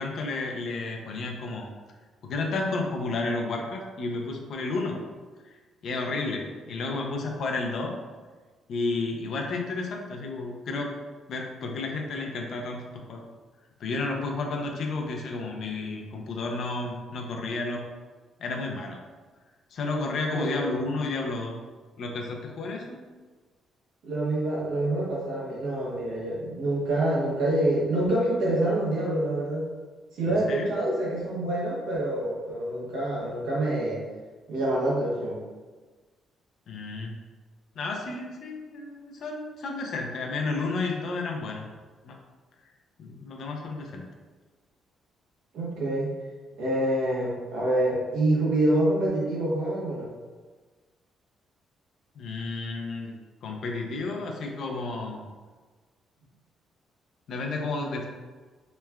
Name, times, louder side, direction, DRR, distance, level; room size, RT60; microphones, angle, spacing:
voice 1, 0.0-1.7 2.2-5.0 5.4-5.6 5.8-7.9 8.7-11.0 11.3-13.3 13.8-17.8 18.4-19.0 19.7-21.6 22.0-23.0 30.5-30.7 36.7-37.2 37.8-41.7 42.0-42.2 43.0-44.0 52.2-53.1 53.4-55.3 57.3-58.1, left 3 dB, 65° left, 1 dB, 0.4 m, -32 dB
voice 2, 20.3-20.7 24.0-29.7 30.1-34.0 34.5-35.4 45.5-46.1 46.6-50.1, right 1 dB, 80° right, -5 dB, 0.9 m, -26 dB
3.0 x 2.2 x 2.3 m, 1.4 s
cardioid pair, 90°, 0 cm